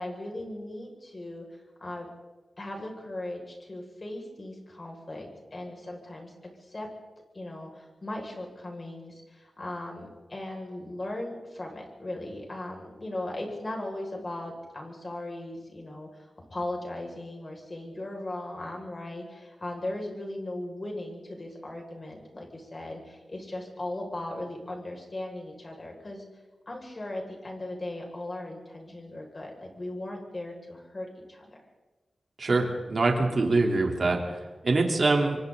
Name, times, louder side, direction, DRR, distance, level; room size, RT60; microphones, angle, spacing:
voice 1, 0.0-2.1 2.6-6.3 6.7-6.9 7.3-26.2 26.7-31.6, left 1 dB, 35° left, 1 dB, 6.5 m, -38 dB
voice 2, 32.4-34.4 34.6-35.4, right 3 dB, 55° right, 1 dB, 4.0 m, -24 dB
27.0 x 24.5 x 4.2 m, 1.2 s
wide cardioid pair, 80°, 0 cm